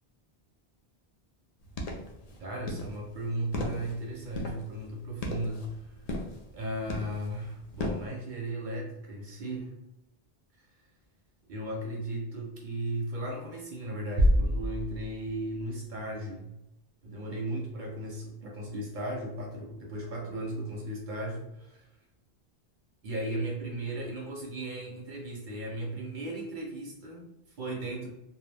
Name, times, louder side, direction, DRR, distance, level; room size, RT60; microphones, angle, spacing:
sound 1, 1.6-8.1, left 1 dB, 55° left, 0.5 m, -38 dB
voice 1, 2.4-5.9 6.5-9.7 11.5-16.5 17.0-21.9 23.0-28.1, right 1 dB, 60° right, 0 dB, 0.6 m, -36 dB
sound 2, 14.2-16.0, equal, 90° right, 0.8 m, -27 dB
2.2 x 2.0 x 3.2 m, 0.88 s
omnidirectional pair, 1.0 m